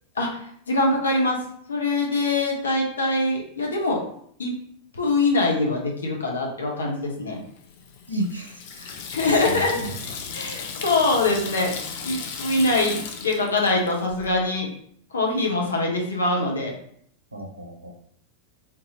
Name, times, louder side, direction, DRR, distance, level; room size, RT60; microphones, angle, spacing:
voice 1, 0.7-1.4 1.7-4.0 4.4-4.5 4.9-7.4 9.1-9.8 10.3-11.7 12.0-14.7 15.1-16.7, left 2 dB, 70° left, 0 dB, 0.8 m, -23 dB
Water tap faucet / Sink (filling or washing), 7.6-14.3, left 6 dB, 50° left, 0.5 m, -35 dB
voice 2, 8.1-10.0 17.3-17.9, right 1 dB, 80° right, 2 dB, 0.6 m, -33 dB
3.7 x 2.7 x 2.8 m, 0.65 s
figure-of-eight pair, 90°, 0 cm